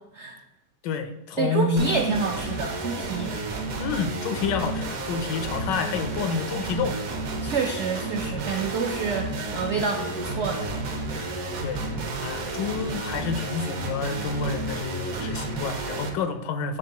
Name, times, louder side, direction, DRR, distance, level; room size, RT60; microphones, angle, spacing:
voice 1, 0.8-1.8 3.8-7.0 11.6-11.8 12.2-16.8, left 5 dB, 90° left, 8 dB, 1.3 m, -29 dB
voice 2, 1.4-3.3 7.4-10.7, right 5 dB, 80° right, 2 dB, 0.6 m, -28 dB
sound 1, 1.8-16.1, right 2 dB, 60° right, 1.2 m, -31 dB
10.5 x 3.7 x 2.8 m, 0.95 s
omnidirectional pair, 1.8 m